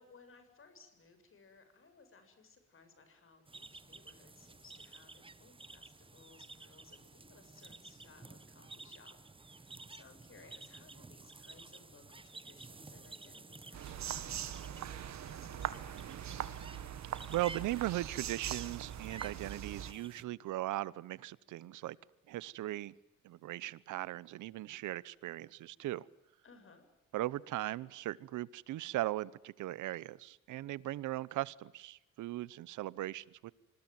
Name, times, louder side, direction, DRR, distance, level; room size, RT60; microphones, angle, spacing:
voice 1, 0.0-16.0 26.4-26.8, left 4 dB, 45° left, 8 dB, 7.6 m, -61 dB
sound 1, 3.5-20.2, right 3 dB, 15° right, 1.3 m, -53 dB
sound 2, 13.7-19.9, right 10 dB, 65° right, 1.9 m, -41 dB
voice 2, 17.3-22.0 22.3-22.9 23.2-26.1 27.1-33.5, right 16 dB, 80° right, 21 dB, 0.9 m, -38 dB
26.5 x 20.5 x 9.4 m, 0.91 s
cardioid pair, 90°, 30 cm